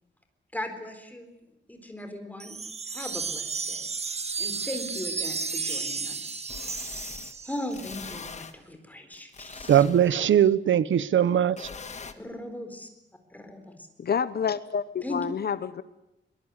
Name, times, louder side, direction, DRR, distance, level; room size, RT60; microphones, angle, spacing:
voice 1, 0.5-1.3 1.7-2.6 2.9-3.9 4.4-6.4 6.7-7.1 7.4-9.8 12.1-12.9 13.3-13.9 15.0-15.2, left 1 dB, 10° left, 4.1 m, -38 dB
sound 1, 2.4-7.8, right 4 dB, 35° right, 1.1 m, -33 dB
sound 2, 5.3-5.4 6.5-7.3 7.7-8.5 9.1-10.3 11.6-12.1, left 5 dB, 35° left, 1.5 m, -42 dB
voice 2, 9.7-11.7, right 10 dB, 85° right, 0.8 m, -20 dB
voice 3, 14.0-15.8, left 7 dB, 55° left, 0.9 m, -28 dB
22.5 x 22.0 x 9.6 m
wide cardioid pair, 155°, 19 cm